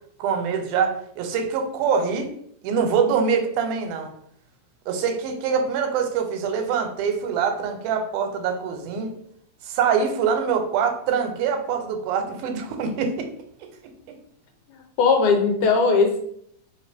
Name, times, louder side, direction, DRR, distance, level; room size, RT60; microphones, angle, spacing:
voice 1, 0.2-2.3 2.6-4.1 4.9-9.2 9.6-13.3 13.6-14.2, right 6 dB, 85° right, 5 dB, 2.1 m, -24 dB
voice 2, 14.7-16.2, left 4 dB, 80° left, 3 dB, 2.2 m, -19 dB
4.4 x 3.2 x 3.3 m, 0.67 s
omnidirectional pair, 3.5 m